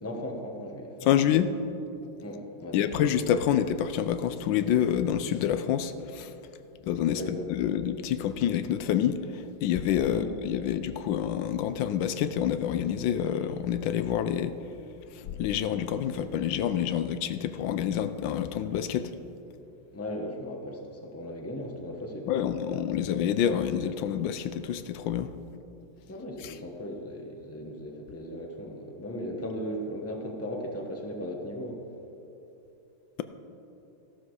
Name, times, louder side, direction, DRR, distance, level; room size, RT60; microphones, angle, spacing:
voice 1, 0.0-1.1 2.2-2.9 7.1-7.5 10.1-10.3 19.9-22.5 26.1-31.8, equal, 10° left, 2 dB, 1.0 m, -37 dB
voice 2, 1.1-1.5 2.7-6.3 6.8-14.5 15.2-19.1 22.3-25.3, left 9 dB, 80° left, 11 dB, 1.3 m, -27 dB
14.0 x 12.0 x 4.8 m, 2.9 s
omnidirectional pair, 2.0 m